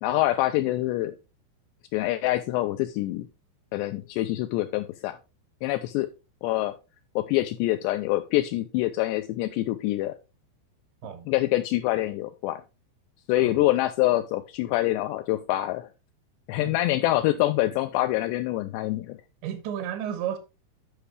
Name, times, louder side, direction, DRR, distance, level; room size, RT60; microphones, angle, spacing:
voice 1, 0.0-1.1 1.9-3.3 3.7-5.2 5.6-6.1 6.4-6.7 7.2-10.2 11.3-12.6 13.3-15.9 16.5-19.2, left 16 dB, 85° left, 2.5 m, -25 dB
voice 2, 13.4-13.7 16.6-16.7 19.4-20.4, right 9 dB, 75° right, 3.2 m, -33 dB
10.0 x 5.5 x 3.3 m
omnidirectional pair, 5.4 m